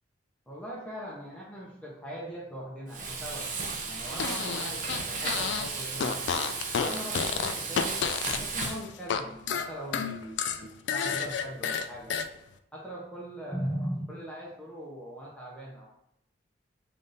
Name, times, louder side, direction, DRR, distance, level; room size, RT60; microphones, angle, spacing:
voice 1, 0.5-3.5 3.8-6.2 6.8-12.1 12.7-15.9, equal, 5° left, -4 dB, 0.6 m, -40 dB
Frying (food), 2.9-8.8, right 4 dB, 45° right, 0.5 m, -34 dB
Fart, 4.1-5.7 6.0-9.2 9.5-12.3, left 7 dB, 75° left, 0.3 m, -31 dB
3.5 x 2.6 x 3.9 m, 0.79 s
head